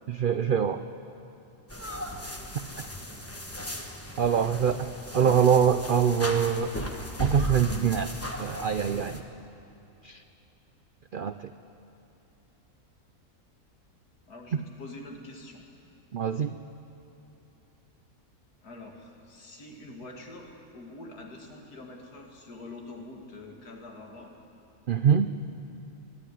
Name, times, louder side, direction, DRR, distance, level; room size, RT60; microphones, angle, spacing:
voice 1, 0.1-0.8 4.2-4.9 5.1-6.7 7.2-9.2 10.0-10.2 11.1-11.3 16.1-16.5 24.9-25.3, right 7 dB, 75° right, 10 dB, 0.4 m, -24 dB
sound 1, 1.7-9.2, equal, 10° left, 1.2 m, -36 dB
voice 2, 14.3-15.6 18.6-24.3, left 2 dB, 80° left, 1 dB, 2.7 m, -45 dB
23.5 x 11.5 x 10.0 m, 2.8 s
omnidirectional pair, 1.6 m